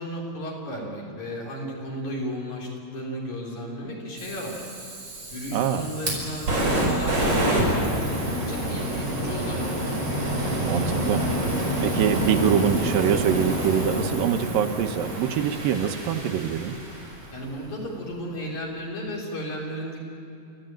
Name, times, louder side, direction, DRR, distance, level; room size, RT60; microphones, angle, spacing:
voice 1, 0.0-4.6 5.3-9.8 17.3-20.0, equal, 55° left, -2 dB, 5.4 m, -34 dB
Fire, 4.2-17.3, right 1 dB, 45° right, 7.0 m, -27 dB
voice 2, 5.5-5.8 10.6-11.3 11.8-16.8, right 8 dB, 80° right, 6 dB, 2.7 m, -24 dB
30.0 x 14.0 x 9.1 m, 2.6 s
omnidirectional pair, 4.1 m